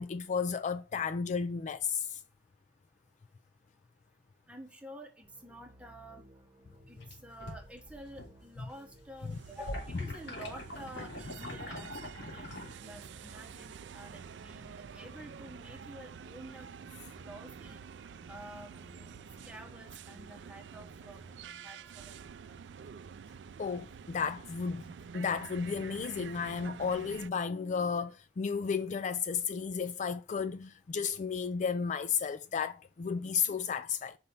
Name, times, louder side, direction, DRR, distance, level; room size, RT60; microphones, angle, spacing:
voice 1, 0.0-2.2 9.2-9.3 23.6-34.2, left 6 dB, 45° left, 0.3 m, -33 dB
voice 2, 4.5-6.3 6.9-12.6 12.8-16.7 17.1-17.8 18.3-18.7 19.5-21.2 21.6-22.5, right 1 dB, 5° right, 1.3 m, -50 dB
sound 1, 5.2-22.3, right 1 dB, 25° right, 1.4 m, -59 dB
sound 2, 6.8-8.4 8.7-12.7, left 1 dB, 85° left, 2.7 m, -43 dB
sound 3, 9.3-27.3, right 6 dB, 85° right, 0.4 m, -48 dB
5.3 x 4.3 x 5.4 m
head